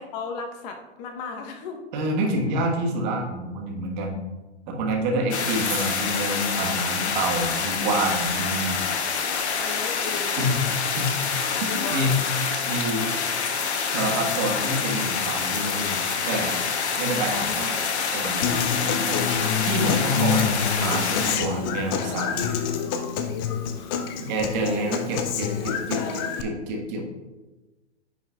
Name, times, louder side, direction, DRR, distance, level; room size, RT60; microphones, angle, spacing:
voice 1, 0.0-1.8 5.2-5.4 9.0-11.0 11.5-12.3 17.3-17.7 22.7-24.0, left 5 dB, 40° left, 4 dB, 1.0 m, -37 dB
voice 2, 1.9-4.2 4.7-8.8 10.4-10.6 10.9-11.1 11.9-12.2 12.7-13.1 13.9-16.6 17.0-19.3 19.6-22.5 24.1-27.1, right 1 dB, 40° right, 1 dB, 1.5 m, -27 dB
sound 1, 5.3-21.4, left 6 dB, 70° left, 1.1 m, -27 dB
sound 2, 5.4-6.6 7.2-7.8 9.2-10.0 10.3-12.0, right 1 dB, 5° right, 1.4 m, -40 dB
Human voice / Acoustic guitar, 18.4-26.4, left 7 dB, 20° left, 0.4 m, -27 dB
9.9 x 5.4 x 2.4 m, 1.2 s
hypercardioid pair, 125°, 34 cm